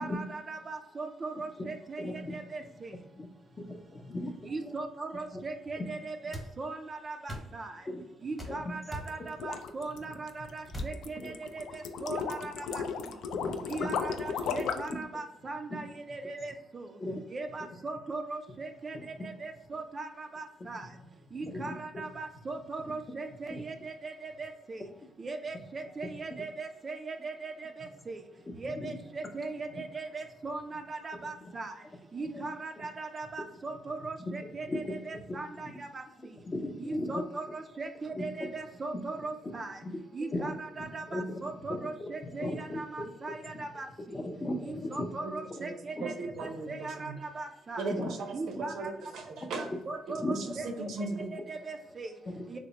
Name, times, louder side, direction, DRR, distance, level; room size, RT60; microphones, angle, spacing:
voice 1, 0.0-2.0 2.3-2.9 4.5-7.7 8.2-12.8 13.7-16.9 17.3-19.0 19.2-20.9 21.3-24.8 25.2-27.7 28.1-28.2 28.6-31.7 32.1-36.0 36.8-39.8 40.1-43.9 44.6-46.1 46.4-47.9 48.3-48.9 49.9-50.7 51.3-52.1 52.5-52.6, right 3 dB, 35° right, 4 dB, 0.3 m, -39 dB
voice 2, 2.0-2.4 3.1-3.3 3.6-4.7 5.3-5.4 5.8-5.9 7.8-8.0 8.4-8.7 11.2-11.3 13.3-13.5 13.8-13.9 15.7-15.8 17.0-17.2 17.6-17.7 18.9-19.3 20.8-20.9 21.3-22.0 23.5-23.8 28.6-29.0 32.2-32.5 34.2-34.3 34.6-35.2 36.4-37.1 38.1-38.2 39.8-40.0 40.3-41.9 42.2-42.8 43.5-43.7 44.1-45.1 46.0-46.1 47.9-48.1 48.6-48.7 50.2-50.3 52.3-52.4, left 1 dB, 30° left, 4 dB, 0.5 m, -37 dB
sound 1, 6.3-6.5 7.3-7.5 8.4-8.6 8.9-9.1 10.7-11.0, equal, 10° left, 0.9 m, -38 dB
sound 2, 8.9-15.0, left 6 dB, 80° left, 0.3 m, -35 dB
voice 3, 46.0-47.2 47.8-48.3 48.6-49.7 50.3-51.3, right 3 dB, 75° right, 4 dB, 0.6 m, -37 dB
3.1 x 2.0 x 3.9 m, 0.93 s
cardioid pair, 90°, 0 cm